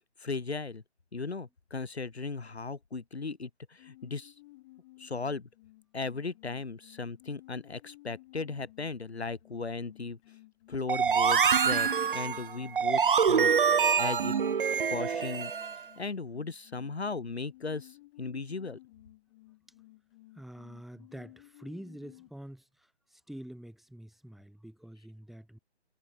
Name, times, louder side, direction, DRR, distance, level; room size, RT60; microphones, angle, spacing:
voice 1, 0.2-0.8 1.1-4.3 5.0-5.5 5.9-10.2 10.7-13.5 14.0-14.3 14.9-15.5 16.0-18.8, left 4 dB, 65° left, 4.8 m, -37 dB
sound 1, 3.8-22.3, left 19 dB, 25° left, 7.6 m, -56 dB
sound 2, 10.9-15.8, right 6 dB, 50° right, 0.7 m, -25 dB
voice 2, 20.3-25.6, right 1 dB, ahead, 6.4 m, -47 dB
figure-of-eight pair, 145°, 35 cm